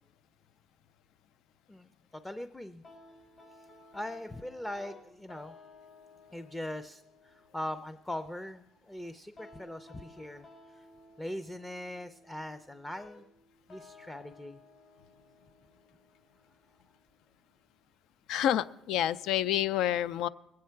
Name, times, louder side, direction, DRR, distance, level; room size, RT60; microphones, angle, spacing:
voice 1, 2.2-2.8 3.9-5.5 6.3-10.5 10.7-10.9 11.2-13.3 13.7-14.6, left 1 dB, 15° left, 10 dB, 0.5 m, -41 dB
sound 1, 2.8-17.8, left 2 dB, 50° left, 3.0 m, -57 dB
voice 2, 18.3-20.3, left 11 dB, 80° left, 17 dB, 0.4 m, -28 dB
20.5 x 8.5 x 4.5 m, 0.90 s
cardioid pair, 105°, 0 cm